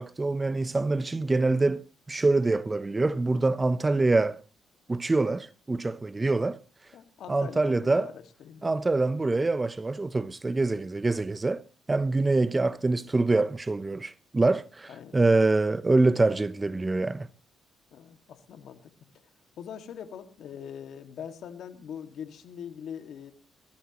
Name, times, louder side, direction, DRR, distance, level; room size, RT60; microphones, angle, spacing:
voice 1, 0.0-4.4 4.9-6.6 7.3-8.1 8.6-11.6 11.9-17.3, right 3 dB, 20° right, 0.8 m, -25 dB
voice 2, 6.9-8.7 14.9-15.2 17.9-18.9 19.6-23.3, left 8 dB, 70° left, 2.0 m, -42 dB
22.5 x 16.0 x 3.0 m
cardioid pair, 90°, 0 cm